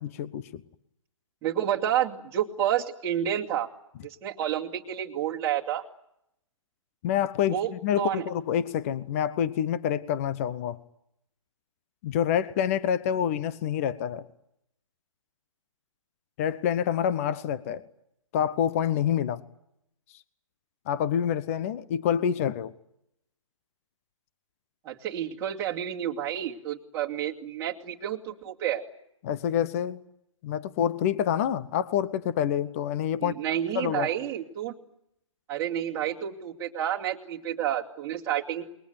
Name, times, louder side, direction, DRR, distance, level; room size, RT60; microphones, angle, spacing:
voice 1, 0.0-0.6 7.0-10.8 12.0-14.3 16.4-17.9 18.3-19.4 20.9-22.7 29.2-30.0 30.4-33.4 33.7-34.1, left 9 dB, 25° left, 15 dB, 1.0 m, -27 dB
voice 2, 1.4-3.7 4.0-5.8 7.5-8.3 24.8-28.8 33.2-34.7 35.5-38.6, right 11 dB, 15° right, -3 dB, 2.5 m, -30 dB
28.5 x 21.5 x 9.4 m, 0.80 s
figure-of-eight pair, 140°, 17 cm